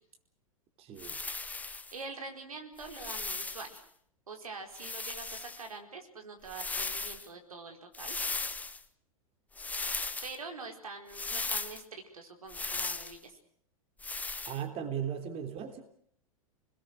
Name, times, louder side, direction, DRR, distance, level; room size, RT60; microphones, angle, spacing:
voice 1, 0.8-1.2 14.5-15.8, right 8 dB, 35° right, 7 dB, 3.4 m, -37 dB
sound 1, 1.0-1.9 2.8-3.8 4.7-5.7 6.4-7.3 7.9-8.8 9.6-10.4 11.1-11.8 12.5-13.2 14.0-14.6, left 3 dB, 10° left, 1.1 m, -37 dB
voice 2, 1.9-3.8 4.3-8.2 10.2-13.4, right 4 dB, 80° right, 3 dB, 4.7 m, -45 dB
29.5 x 21.0 x 6.5 m, 0.63 s
hypercardioid pair, 100°, 18 cm